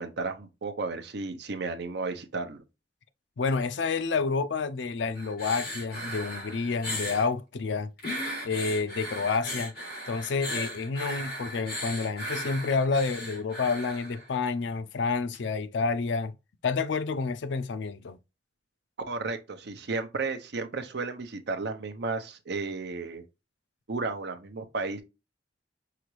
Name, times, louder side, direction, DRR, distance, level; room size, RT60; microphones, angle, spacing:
voice 1, 0.0-2.6 19.1-23.2 23.9-25.0, right 3 dB, 65° right, 0.7 m, -33 dB
voice 2, 3.4-7.9 8.4-9.7 10.1-16.3 16.6-18.2, left 4 dB, 80° left, 0.5 m, -29 dB
sound 1, 5.1-7.3 8.0-14.3 15.3-15.4, equal, 60° left, 2.9 m, -37 dB
5.7 x 2.5 x 3.1 m
head